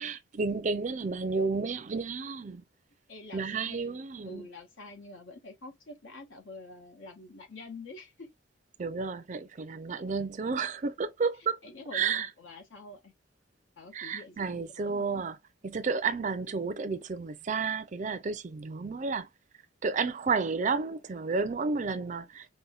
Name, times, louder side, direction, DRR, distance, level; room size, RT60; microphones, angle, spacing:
voice 1, 0.0-2.6 3.3-4.5 8.8-11.6 11.9-12.3 13.9-15.4 15.6-19.3 19.8-22.5, right 4 dB, 40° right, 0.4 m, -31 dB
voice 2, 3.1-8.3 11.4-13.1 13.8-15.2, left 3 dB, 80° left, 1.2 m, -47 dB
5.4 x 2.2 x 2.4 m
head